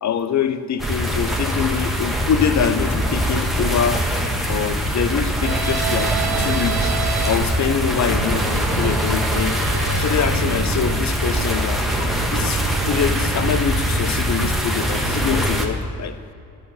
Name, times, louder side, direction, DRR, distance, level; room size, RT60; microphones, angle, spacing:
voice 1, 0.0-4.0 4.5-6.9 7.2-9.6 10.0-16.1, left 8 dB, 35° left, 11 dB, 0.7 m, -24 dB
sound 1, 0.8-15.7, equal, ahead, 1.4 m, -22 dB
sound 2, 5.4-14.9, right 7 dB, 45° right, 1.0 m, -30 dB
12.0 x 4.8 x 7.0 m, 2.5 s
hypercardioid pair, 45°, 49 cm